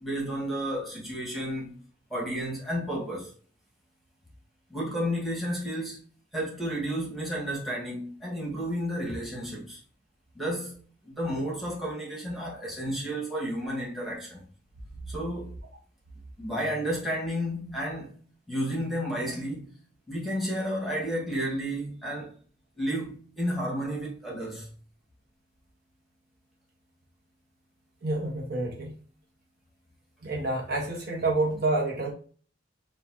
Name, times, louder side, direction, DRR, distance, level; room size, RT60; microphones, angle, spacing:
voice 1, 0.0-1.8 2.1-3.3 4.7-6.0 6.3-9.8 10.3-14.4 15.1-15.6 16.4-18.2 18.5-19.8 20.1-22.3 22.8-24.7, equal, ahead, 1.4 m, -32 dB
voice 2, 28.0-28.9 30.2-32.1, right 2 dB, 55° right, 1.1 m, -28 dB
6.7 x 2.4 x 2.7 m
head